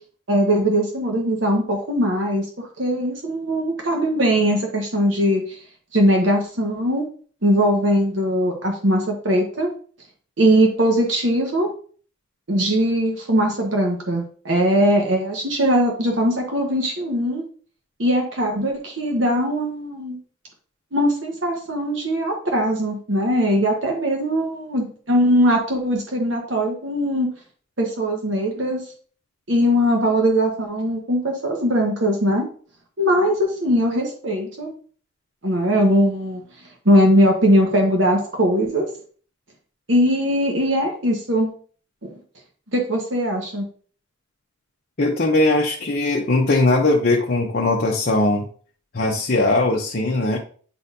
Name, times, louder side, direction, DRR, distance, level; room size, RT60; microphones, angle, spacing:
voice 1, 0.3-5.6 5.9-7.0 7.4-9.7 10.4-11.7 12.5-17.4 18.0-20.2 20.9-27.3 27.8-28.8 29.5-32.5 33.0-34.7 35.4-36.4 36.8-38.9 39.9-41.5 42.7-43.6, equal, 65° right, 0 dB, 1.2 m, -20 dB
voice 2, 45.0-48.4 48.9-50.4, left 2 dB, 45° left, -1 dB, 0.8 m, -19 dB
9.0 x 4.0 x 2.7 m, 0.43 s
head